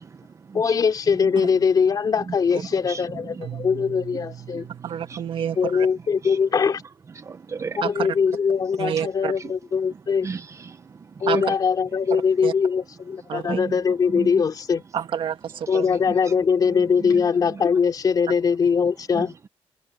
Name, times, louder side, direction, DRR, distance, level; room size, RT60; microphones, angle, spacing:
voice 1, 0.5-4.7 5.6-6.8 7.8-10.3 11.2-14.8 15.7-19.3, left 6 dB, 40° left, 2.8 m, -22 dB
Keyboard (musical), 3.4-6.4, right 10 dB, 70° right, 2.7 m, -41 dB
voice 2, 4.8-5.9 7.8-8.1 8.8-9.3 11.3-11.4 12.4-12.5 13.3-13.6 14.9-16.0, right 8 dB, 55° right, 1.4 m, -28 dB
voice 3, 7.2-7.8 10.2-10.8 11.3-11.4 13.5-13.7 14.1-14.3, right 5 dB, 30° right, 0.7 m, -33 dB
cardioid pair, 150°, 10 cm